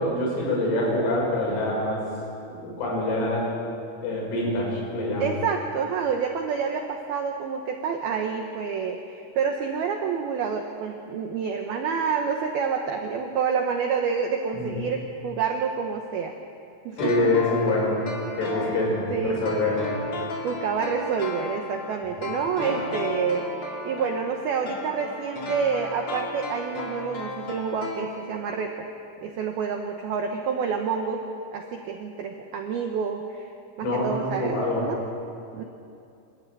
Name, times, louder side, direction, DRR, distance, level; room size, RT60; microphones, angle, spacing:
voice 1, 0.0-2.1 2.5-3.6 4.0-5.3 14.5-14.8 17.0-18.0 18.4-19.8 33.8-34.9, left 1 dB, 80° left, -2 dB, 8.5 m, -25 dB
voice 2, 5.2-16.3 16.9-17.3 18.6-18.8 19.1-19.4 20.4-28.9 29.2-31.2 31.5-33.5 33.8-35.0 35.5-35.6, right 6 dB, 85° right, 3 dB, 2.2 m, -28 dB
sound 1, 17.0-28.6 28.9-29.0, left 2 dB, 35° left, 2.6 m, -34 dB
27.0 x 13.5 x 9.0 m, 2.6 s
omnidirectional pair, 5.9 m